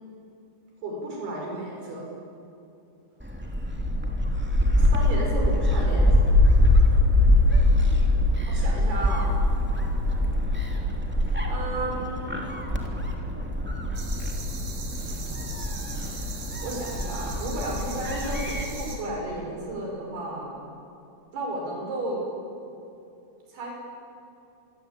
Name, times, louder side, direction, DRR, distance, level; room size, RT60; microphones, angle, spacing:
voice 1, 0.8-2.0 4.8-6.3 8.5-9.3 11.3-12.4 16.6-20.6 21.3-22.2 23.5-23.7, right 1 dB, 80° right, -1 dB, 7.9 m, -33 dB
Gull seagull, 3.2-18.6, left 1 dB, 5° right, 2.3 m, -23 dB
sound 1, 13.9-19.0, right 4 dB, 50° right, 5.2 m, -41 dB
27.0 x 22.5 x 9.0 m, 2.7 s
omnidirectional pair, 4.5 m